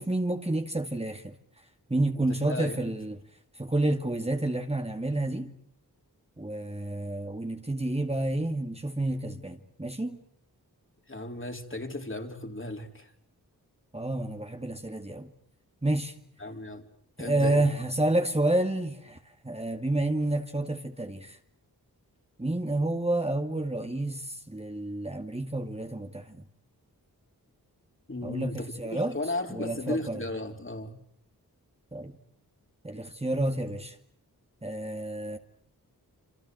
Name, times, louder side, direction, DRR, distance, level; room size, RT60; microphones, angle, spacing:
voice 1, 0.0-1.3 1.9-3.2 3.6-5.5 6.4-10.2 13.9-15.3 15.8-16.1 17.2-19.2 19.4-21.4 22.4-26.4 28.2-29.2 29.5-30.2 31.9-32.1 32.8-34.0 34.6-35.4, right 2 dB, 15° right, 2.2 m, -29 dB
voice 2, 2.3-2.9 11.1-13.1 16.4-16.8 17.2-17.7 28.1-31.0, left 2 dB, 30° left, 3.9 m, -35 dB
28.0 x 25.5 x 7.8 m
cardioid pair, 50°, 38 cm